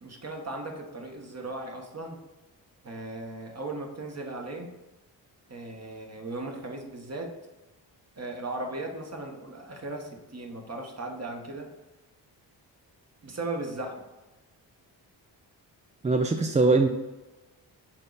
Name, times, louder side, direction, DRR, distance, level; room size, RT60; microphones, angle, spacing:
voice 1, 0.0-2.2 2.8-4.7 5.5-7.3 8.2-11.7 13.2-14.0, right 2 dB, 35° right, 2 dB, 1.4 m, -37 dB
voice 2, 16.0-16.9, right 3 dB, 15° right, 4 dB, 0.4 m, -21 dB
6.0 x 3.9 x 4.1 m, 1.1 s
supercardioid pair, 50°, 46 cm